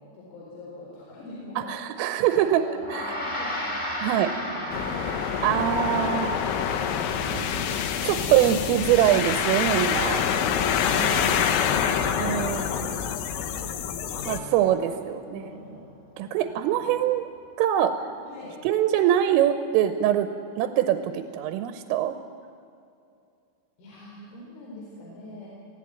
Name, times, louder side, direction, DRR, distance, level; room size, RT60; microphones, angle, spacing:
voice 1, 0.1-1.7 2.4-2.9 3.2-6.0 7.0-7.7 10.2-11.4 13.2-15.9 16.2-16.9 18.3-18.6 23.8-25.5, left 2 dB, 70° left, -5 dB, 7.0 m, -43 dB
voice 2, 1.6-2.6 2.9-3.1 4.0-4.3 5.4-6.8 7.3-7.5 8.1-10.2 11.0-11.3 12.2-12.9 14.3-15.5 16.2-17.3 17.6-17.9 18.7-20.3 20.6-22.1, right 11 dB, 90° right, 9 dB, 3.5 m, -23 dB
Gong, 2.8-12.3, left 1 dB, 15° left, 2.0 m, -36 dB
sound 1, 4.7-14.4, left 8 dB, 85° left, 3.8 m, -26 dB
25.5 x 16.0 x 9.1 m, 2.5 s
omnidirectional pair, 5.9 m